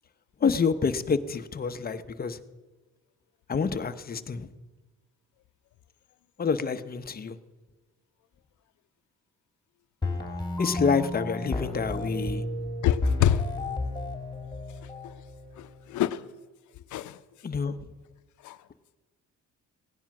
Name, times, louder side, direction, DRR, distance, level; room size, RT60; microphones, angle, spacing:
voice 1, 0.4-2.4 3.5-4.5 6.4-7.3 10.6-12.4 17.4-17.7, left 5 dB, 30° left, 0.9 m, -27 dB
sound 1, 10.0-16.0, left 2 dB, 15° left, 2.6 m, -32 dB
voice 2, 12.8-13.4 15.6-16.2 16.9-17.2 18.4-18.6, left 11 dB, 75° left, 0.7 m, -25 dB
17.0 x 10.0 x 6.0 m
cardioid pair, 90°, 30 cm